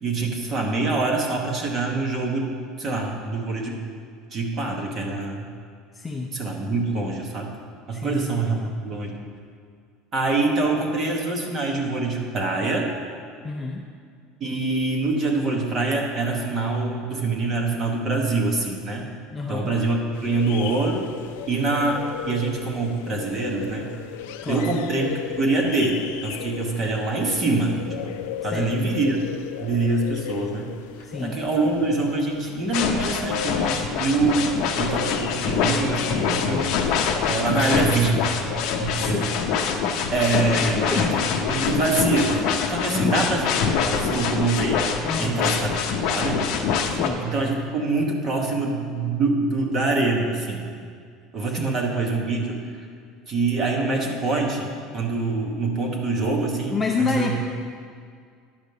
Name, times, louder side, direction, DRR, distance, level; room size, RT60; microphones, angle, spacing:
voice 1, 0.0-2.5 2.8-3.8 4.3-5.5 6.3-7.5 7.9-9.2 10.1-12.9 14.4-19.1 19.5-21.1 21.5-23.9 24.5-30.7 31.2-36.8 37.3-38.4 38.8-39.4 40.1-41.2 41.5-42.4 42.7-43.5 43.9-44.8 45.2-45.7 46.1-46.4 47.2-50.6 51.3-52.6 53.3-57.4, right 3 dB, 25° right, 0 dB, 1.1 m, -25 dB
voice 2, 5.9-6.4 7.9-8.4 13.4-13.9 19.3-19.7 24.4-24.8 28.5-28.7 31.0-31.4 38.9-39.3 40.6-41.1 42.9-43.2 45.0-45.4 46.9-47.3 51.6-51.8 56.7-57.4, left 4 dB, 10° left, 1 dB, 0.4 m, -28 dB
sound 1, 20.1-39.5, left 10 dB, 80° left, 0.4 m, -36 dB
sound 2, 32.7-47.1, left 6 dB, 45° left, 0.7 m, -25 dB
10.5 x 5.1 x 6.6 m, 2.1 s
cardioid pair, 180°, 0 cm